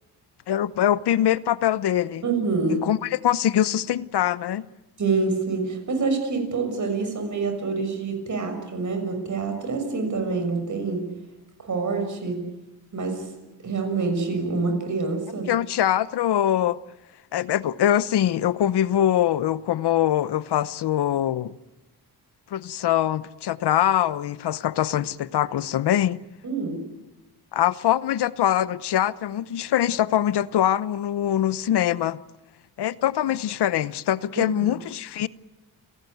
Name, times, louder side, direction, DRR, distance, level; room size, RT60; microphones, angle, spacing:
voice 1, 0.5-2.2 2.8-4.6 15.5-16.8 17.3-21.6 22.5-26.2 27.5-32.2 32.8-35.3, left 11 dB, 75° left, 0.9 m, -23 dB
voice 2, 2.2-2.9 5.0-11.1 11.6-12.5 12.9-13.3 13.6-15.5 26.4-26.8 34.4-34.7, right 4 dB, 45° right, 6.5 m, -26 dB
29.5 x 17.5 x 9.3 m
wide cardioid pair, 135°, 40 cm